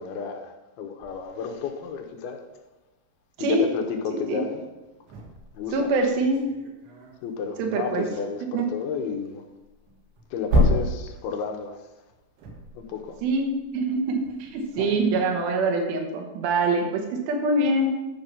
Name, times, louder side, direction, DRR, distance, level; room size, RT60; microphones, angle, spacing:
voice 1, 0.0-2.4 3.4-4.6 5.5-5.9 7.2-9.5 10.3-11.8 12.7-13.2 14.8-15.0, left 6 dB, 75° left, 4 dB, 2.5 m, -32 dB
sound 1, 1.0-2.0 4.7-8.3 9.5-15.4, left 1 dB, 85° right, 4.0 m, -31 dB
voice 2, 4.1-4.4 5.7-6.4 7.6-8.0 8.5-8.7 13.2-18.0, right 2 dB, 70° right, 3 dB, 2.8 m, -24 dB
9.9 x 5.7 x 5.4 m, 1.1 s
omnidirectional pair, 5.0 m